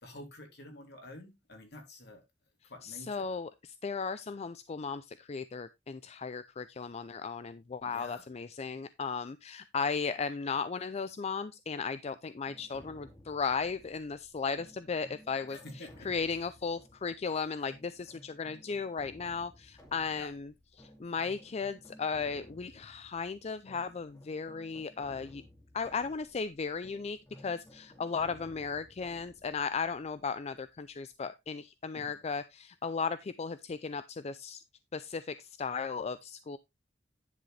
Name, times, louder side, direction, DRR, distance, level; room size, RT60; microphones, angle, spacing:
voice 1, 0.0-2.2 2.7-3.3 7.8-8.2 15.5-16.1 20.1-20.3 31.9-32.2, left 1 dB, 65° left, 2.9 m, -49 dB
voice 2, 2.8-25.4 25.7-34.6 34.9-36.6, left 5 dB, 35° left, 0.4 m, -36 dB
sound 1, 12.5-31.2, equal, 20° left, 2.3 m, -57 dB
10.5 x 6.3 x 3.3 m
head